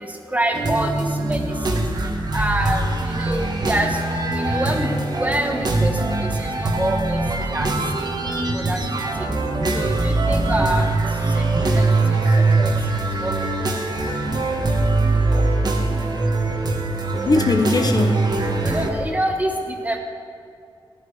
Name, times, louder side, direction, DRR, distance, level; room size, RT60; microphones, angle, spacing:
voice 1, 0.3-1.4 1.7-1.8 2.3-4.0 4.3-5.9 6.4-7.2 7.5-7.7 8.0-8.1 8.5-8.8 9.7-10.9 11.4-11.9 13.2-13.3 18.6-20.0, right 1 dB, 15° right, 3 dB, 1.4 m, -26 dB
sound 1, 0.5-18.9, right 2 dB, 45° right, 1.5 m, -22 dB
voice 2, 14.3-14.8 15.3-15.6 17.2-18.3, left 3 dB, 45° left, 5 dB, 1.0 m, -23 dB
15.0 x 11.0 x 4.9 m, 2.3 s
wide cardioid pair, 100°, 9 cm